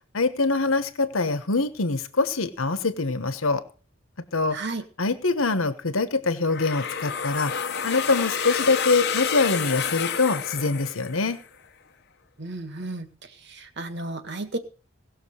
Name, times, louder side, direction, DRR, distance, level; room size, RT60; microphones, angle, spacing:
voice 1, 0.1-3.6 4.3-4.6 5.0-7.5 7.8-11.4, left 3 dB, 90° left, 11 dB, 1.3 m, -24 dB
voice 2, 4.5-4.8 12.4-13.1 13.4-14.6, right 2 dB, 55° right, 9 dB, 1.8 m, -33 dB
sound 1, 6.5-11.4, left 7 dB, 55° left, 1.0 m, -29 dB
18.0 x 6.6 x 6.5 m, 0.39 s
head